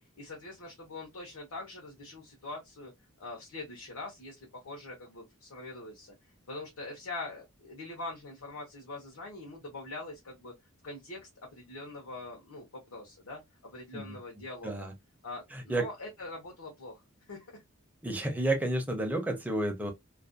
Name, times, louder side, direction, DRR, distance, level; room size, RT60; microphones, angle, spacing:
voice 1, 0.0-2.9 3.2-6.1 6.5-10.5 10.8-14.9 15.2-17.0 17.3-17.5, left 2 dB, 80° left, 0.8 m, -43 dB
voice 2, 15.5-15.9 18.0-19.9, right 1 dB, 5° right, 0.5 m, -31 dB
2.4 x 2.1 x 2.4 m
head